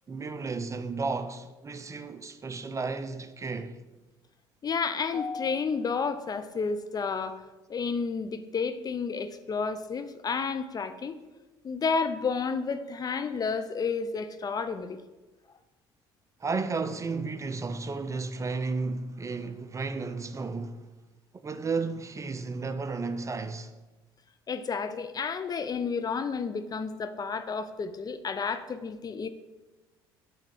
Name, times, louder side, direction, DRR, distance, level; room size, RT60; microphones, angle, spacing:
voice 1, 0.1-3.8 16.4-20.8 21.4-23.7, right 4 dB, 25° right, 0.5 m, -33 dB
voice 2, 4.6-7.4 7.7-11.2 11.6-15.0 24.5-29.3, left 5 dB, 30° left, 0.5 m, -31 dB
6.6 x 3.6 x 6.0 m
hypercardioid pair, 65°, 12 cm